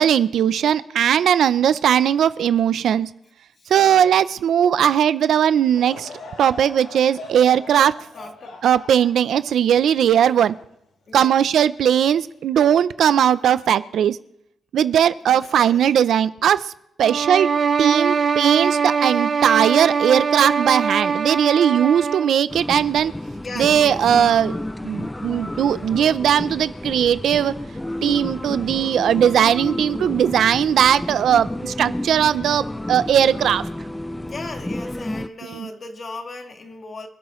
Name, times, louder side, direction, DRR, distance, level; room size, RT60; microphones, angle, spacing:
voice 1, 0.0-3.1 3.7-6.1 6.4-8.0 8.6-10.5 11.1-14.2 14.7-16.7 17.0-17.5 17.8-23.1 23.6-24.6 24.8-27.6 28.0-33.7 35.5-35.7, right 9 dB, 75° right, 0.5 m, -18 dB
Laughter / Crowd, 5.6-11.1 11.6-11.7 12.6-12.8, left 2 dB, 75° left, 5.5 m, -41 dB
voice 2, 8.1-8.6 11.1-11.4 15.2-15.8 23.3-24.3 34.2-37.1, left 3 dB, 35° left, 1.7 m, -37 dB
sound 1, 17.0-22.4, right 5 dB, 40° right, 0.8 m, -22 dB
sound 2, 22.5-35.3, left 1 dB, 10° left, 0.4 m, -31 dB
26.0 x 11.5 x 3.1 m
cardioid pair, 135°, 0 cm